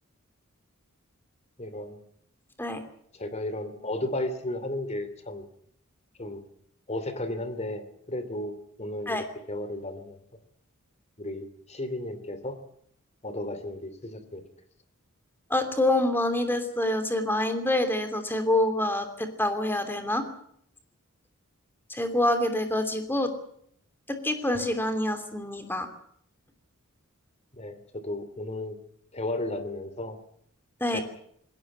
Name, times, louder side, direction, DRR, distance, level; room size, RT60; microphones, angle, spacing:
voice 1, 1.6-2.0 3.1-5.4 6.2-6.4 6.9-10.2 11.2-12.6 13.2-14.4 27.5-28.8 29.1-30.2 30.9-31.0, left 1 dB, 30° left, 12 dB, 2.8 m, -34 dB
voice 2, 15.5-20.3 21.9-23.3 24.1-25.9 30.8-31.0, left 1 dB, 10° left, 7 dB, 3.0 m, -26 dB
20.5 x 18.0 x 9.5 m, 0.66 s
head